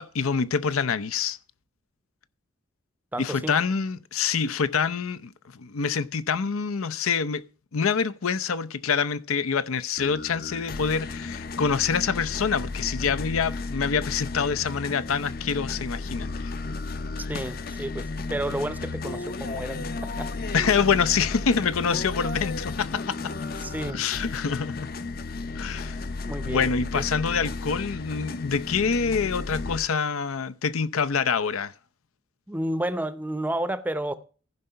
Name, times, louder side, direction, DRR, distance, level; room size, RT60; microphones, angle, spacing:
voice 1, 0.0-1.4 3.2-7.4 7.7-16.5 20.5-23.5 23.9-24.9 25.6-26.0 26.5-31.7, left 6 dB, 85° left, 0.6 m, -26 dB
voice 2, 3.1-3.6 17.3-19.9 20.2-20.3 23.6-24.1 26.2-27.1 32.5-34.1, right 1 dB, 10° right, 0.5 m, -31 dB
sound 1, 10.0-29.8, left 3 dB, 45° left, 0.6 m, -34 dB
15.0 x 5.3 x 5.6 m
head